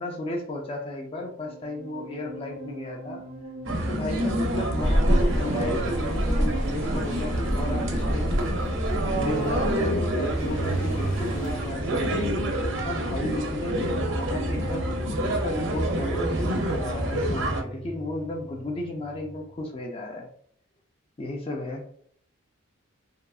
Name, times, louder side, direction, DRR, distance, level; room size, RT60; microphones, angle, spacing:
voice 1, 0.0-3.2 3.9-8.5 9.1-12.4 12.8-15.0 15.3-20.3 21.2-21.8, left 1 dB, 25° left, 1 dB, 0.3 m, -33 dB
sound 1, 1.2-19.7, left 1 dB, 15° right, 0.6 m, -41 dB
sound 2, 3.7-17.6, right 1 dB, 55° right, 0.5 m, -28 dB
sound 3, 4.8-11.7, equal, 70° left, 1.1 m, -29 dB
2.7 x 2.4 x 2.3 m, 0.63 s
head